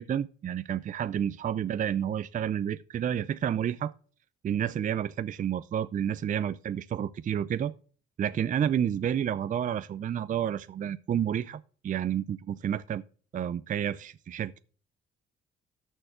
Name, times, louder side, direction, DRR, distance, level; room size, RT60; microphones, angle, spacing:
voice 1, 0.0-3.9 4.4-7.7 8.2-13.0 13.3-14.6, right 9 dB, 40° right, 0.4 m, -30 dB
13.0 x 4.6 x 5.8 m
cardioid pair, 90°, 20 cm